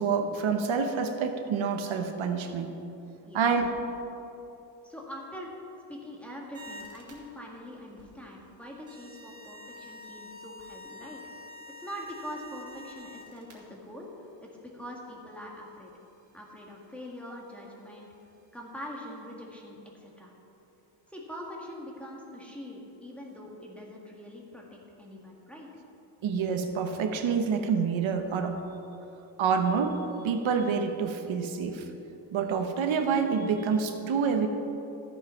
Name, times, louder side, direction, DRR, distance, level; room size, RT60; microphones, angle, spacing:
voice 1, 0.0-2.7 3.3-3.7 26.2-28.6 29.4-30.0 30.2-31.8 32.3-34.5, right 6 dB, 85° right, 5 dB, 1.1 m, -27 dB
voice 2, 4.8-5.5 5.9-14.1 14.4-15.9 16.3-18.1 18.5-20.3 21.1-25.7, equal, 5° left, -2 dB, 1.7 m, -43 dB
sound 1, 6.5-7.1 7.8-8.2 8.9-13.5 15.1-15.2 15.5-15.6 15.8-19.3, left 2 dB, 30° right, 2.7 m, -48 dB
13.5 x 7.5 x 5.7 m, 2.8 s
wide cardioid pair, 160°, 46 cm